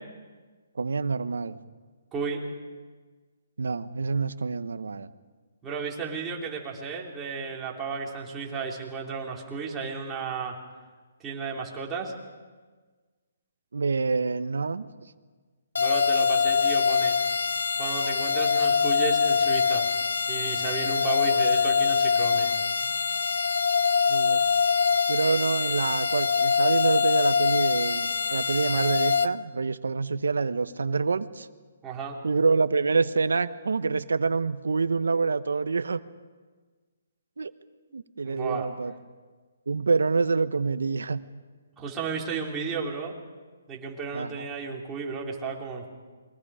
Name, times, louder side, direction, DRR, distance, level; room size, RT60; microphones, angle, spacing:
voice 1, 0.7-1.6 3.6-5.1 13.7-14.8 24.1-24.5 25.1-31.5 32.2-36.0 37.4-37.5 37.9-38.9 39.7-41.2 44.1-44.5, right 4 dB, 90° right, 12 dB, 1.1 m, -26 dB
voice 2, 2.1-2.4 5.6-10.6 11.2-12.1 15.8-17.2 17.8-19.8 20.3-22.5 22.8-23.0 31.8-32.2 38.2-38.7 41.8-43.1 43.7-45.9, right 5 dB, 15° right, -3 dB, 3.7 m, -33 dB
sound 1, 15.8-29.3, left 6 dB, 90° left, 0.9 m, -24 dB
29.0 x 23.0 x 5.1 m, 1.4 s
hypercardioid pair, 160°, 0 cm